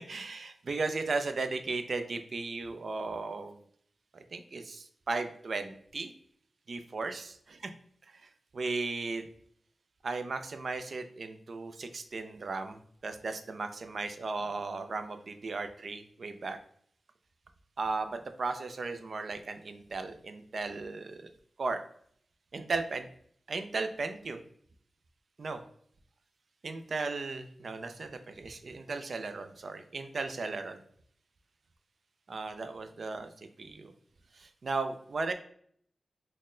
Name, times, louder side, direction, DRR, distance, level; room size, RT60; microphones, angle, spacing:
voice 1, 0.0-3.6 4.1-6.1 6.7-7.3 7.6-7.7 8.1-9.3 10.0-16.6 17.8-21.3 21.6-21.8 22.5-23.1 23.5-24.4 25.4-25.6 26.6-30.8 32.3-33.9 34.3-35.3, right 3 dB, 55° right, 8 dB, 0.3 m, -36 dB
4.0 x 2.1 x 3.6 m, 0.62 s
wide cardioid pair, 120°, 0 cm